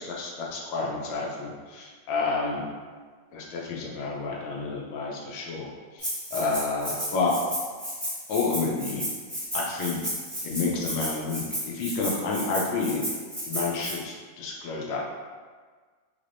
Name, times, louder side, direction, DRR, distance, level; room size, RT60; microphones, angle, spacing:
voice 1, 0.0-2.6 3.3-5.7 6.3-7.3 8.3-9.0 9.5-10.0 10.4-13.0 13.5-15.0, left 4 dB, 85° left, -2 dB, 1.3 m, -29 dB
Rattle (instrument), 6.0-13.9, equal, ahead, 0.6 m, -33 dB
3.5 x 3.3 x 2.5 m, 1.5 s
omnidirectional pair, 2.0 m